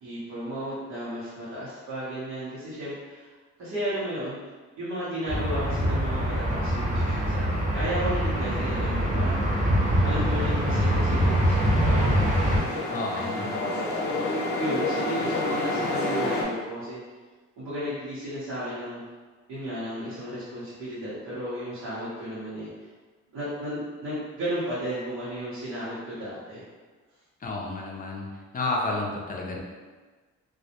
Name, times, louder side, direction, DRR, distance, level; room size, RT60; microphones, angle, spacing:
voice 1, 0.0-3.3 3.6-4.4 4.8-9.7 10.0-17.0 17.6-19.0 19.5-22.7 23.3-26.6, equal, 80° right, -12 dB, 0.9 m, -34 dB
sound 1, 5.3-12.6, equal, 25° right, 0.7 m, -24 dB
sound 2, 10.1-16.4, left 2 dB, 75° left, 0.6 m, -30 dB
voice 2, 12.9-13.5 27.4-28.3 28.5-29.6, left 2 dB, 30° left, -2 dB, 0.5 m, -31 dB
2.2 x 2.0 x 2.8 m, 1.4 s
cardioid pair, 90°, 30 cm